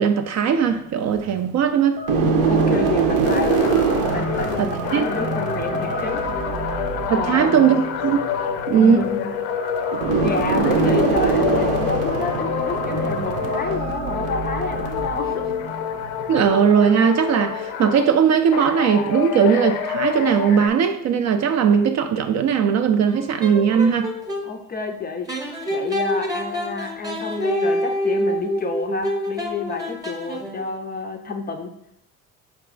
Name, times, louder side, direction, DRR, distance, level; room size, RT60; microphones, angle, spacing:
voice 1, 0.0-2.0 4.6-5.0 7.1-8.2 8.7-9.1 16.3-24.1, right 7 dB, 45° right, 0.4 m, -18 dB
sound 1, 0.6-1.4 2.0-16.5, right 4 dB, 65° right, 0.7 m, -24 dB
voice 2, 2.5-3.6 4.1-6.3 7.1-7.6 8.7-9.3 10.2-15.5 24.4-25.4 25.7-31.7, left 4 dB, 25° left, 0.4 m, -29 dB
sound 2, 3.2-13.8 14.1-18.1 18.5-20.7, left 9 dB, 75° left, 0.5 m, -28 dB
sound 3, 23.1-24.5 25.3-30.7, equal, 10° right, 0.8 m, -26 dB
4.6 x 2.4 x 3.8 m
hypercardioid pair, 60°, 41 cm